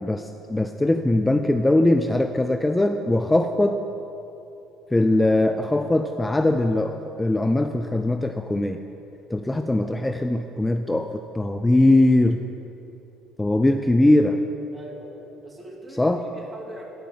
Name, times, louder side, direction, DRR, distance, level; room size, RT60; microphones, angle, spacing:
voice 1, 0.0-3.8 4.9-8.8 9.3-12.4 13.4-14.4 16.0-16.2, left 1 dB, 15° left, 7 dB, 0.5 m, -21 dB
voice 2, 14.7-16.9, right 1 dB, 25° right, -1 dB, 2.5 m, -41 dB
12.0 x 5.2 x 8.7 m, 2.9 s
hypercardioid pair, 55°, 0 cm